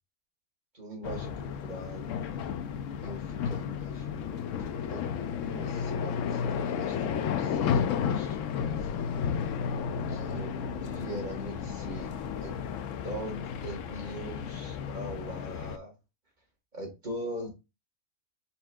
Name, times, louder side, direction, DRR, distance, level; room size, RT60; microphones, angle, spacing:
voice 1, 0.7-2.1 3.0-9.1 10.1-12.1 12.4-12.5 13.0-15.9 16.7-17.5, right 1 dB, 30° right, 1.8 m, -42 dB
sound 1, 1.0-15.8, left 7 dB, 70° left, 0.9 m, -33 dB
4.4 x 4.4 x 2.3 m
omnidirectional pair, 1.5 m